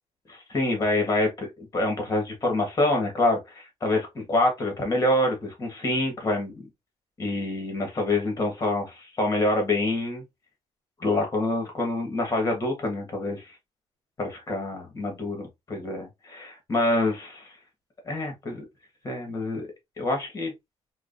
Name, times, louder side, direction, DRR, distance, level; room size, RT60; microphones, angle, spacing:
voice 1, 0.3-6.7 7.2-10.2 11.0-13.5 14.2-17.5 18.0-18.6 19.0-19.7 20.0-20.5, left 2 dB, 30° left, 1.4 m, -26 dB
4.6 x 2.2 x 2.5 m
cardioid pair, 145°, 11 cm